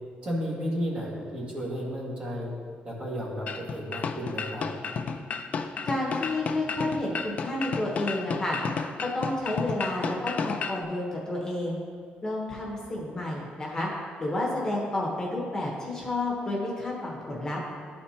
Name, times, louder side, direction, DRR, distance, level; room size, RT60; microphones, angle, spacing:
voice 1, 0.2-2.5 2.8-4.6, equal, 35° right, -4 dB, 1.7 m, -33 dB
sound 1, 3.5-10.8, left 5 dB, 45° left, 0.3 m, -32 dB
voice 2, 5.8-8.6 9.0-11.8 12.2-13.9 14.2-17.6, left 2 dB, 20° left, -3 dB, 1.1 m, -30 dB
11.5 x 4.3 x 2.9 m, 2.1 s
cardioid pair, 125°, 3 cm